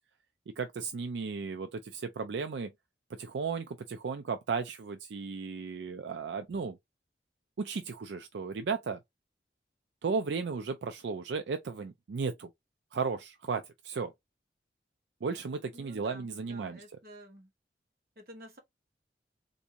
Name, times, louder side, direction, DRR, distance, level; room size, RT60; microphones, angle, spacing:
voice 1, 0.6-2.7 3.2-6.8 7.6-9.0 10.0-12.5 12.9-14.1 15.2-16.8, right 5 dB, 80° right, 0.4 m, -35 dB
voice 2, 15.7-17.5 18.2-18.6, equal, 55° right, 1.2 m, -51 dB
3.5 x 2.6 x 2.7 m
head